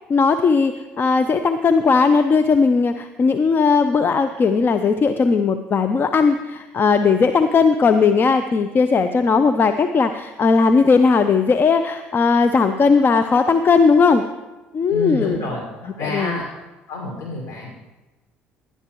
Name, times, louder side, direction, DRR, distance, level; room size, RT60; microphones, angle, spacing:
voice 1, 0.1-14.2 14.7-15.4 16.0-16.4, left 5 dB, 40° left, 9 dB, 0.7 m, -17 dB
voice 2, 14.9-15.6 16.0-16.5 16.9-17.7, left 2 dB, 65° left, -1 dB, 5.4 m, -28 dB
19.0 x 11.0 x 3.1 m, 1.1 s
hypercardioid pair, 60°, 6 cm